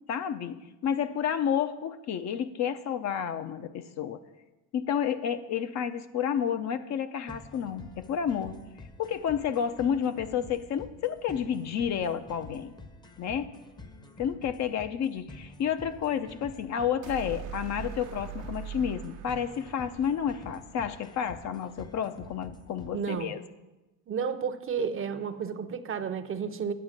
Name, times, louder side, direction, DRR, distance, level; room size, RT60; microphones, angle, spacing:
voice 1, 0.1-4.2 4.7-8.6 9.0-12.7 13.2-13.5 14.2-23.4, left 8 dB, 45° left, 10 dB, 0.6 m, -30 dB
sound 1, 7.3-23.3, left 2 dB, 10° left, 0.8 m, -49 dB
sound 2, 17.0-21.3, right 9 dB, 90° right, 1.1 m, -42 dB
voice 2, 22.9-23.3 24.1-26.7, right 6 dB, 35° right, 10 dB, 0.7 m, -32 dB
8.9 x 8.0 x 5.1 m, 1.1 s
supercardioid pair, 95°, 38 cm